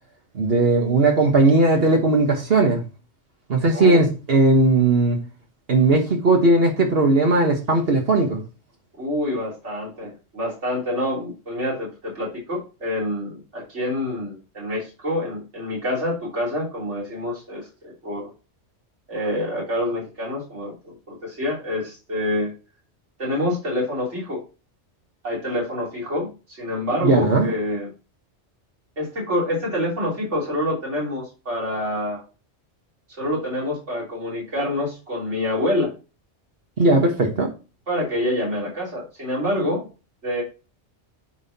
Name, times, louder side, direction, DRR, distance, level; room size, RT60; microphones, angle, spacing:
voice 1, 0.3-2.8 3.5-5.2 5.7-8.4 27.0-27.5 36.8-37.5, right 2 dB, 60° right, 1.4 m, -18 dB
voice 2, 3.7-4.0 9.0-18.3 19.1-22.5 23.2-24.4 25.2-27.9 29.0-32.2 33.2-35.9 37.9-39.9 40.2-40.4, left 1 dB, 80° right, 3.6 m, -27 dB
9.4 x 5.6 x 2.8 m
omnidirectional pair, 1.2 m